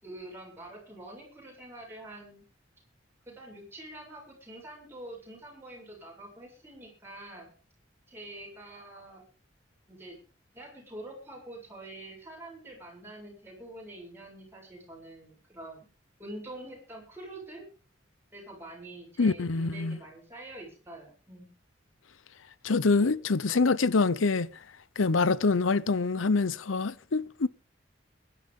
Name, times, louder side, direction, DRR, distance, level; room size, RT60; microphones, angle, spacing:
voice 1, 0.0-2.4 3.3-7.5 8.1-9.2 9.9-10.2 10.5-15.9 16.2-17.6 18.3-21.5 23.4-23.6, right 1 dB, 10° right, 7.3 m, -46 dB
voice 2, 19.2-20.0 22.6-24.5 25.0-27.5, left 4 dB, 90° left, 0.7 m, -25 dB
21.5 x 11.0 x 3.7 m
head